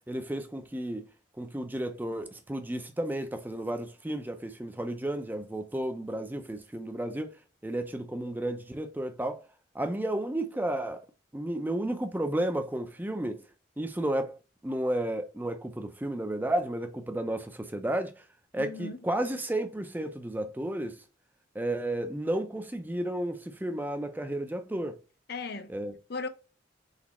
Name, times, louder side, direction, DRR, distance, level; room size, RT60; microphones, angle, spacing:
voice 1, 0.1-1.1 1.4-7.3 7.6-9.4 9.7-11.0 11.3-13.4 13.8-14.4 14.6-18.1 18.5-21.0 21.6-25.0 25.7-25.9, right 1 dB, 10° right, 0.4 m, -32 dB
voice 2, 18.6-19.0 25.3-25.8 26.1-26.3, left 4 dB, 55° left, 0.5 m, -37 dB
4.1 x 4.0 x 2.9 m
head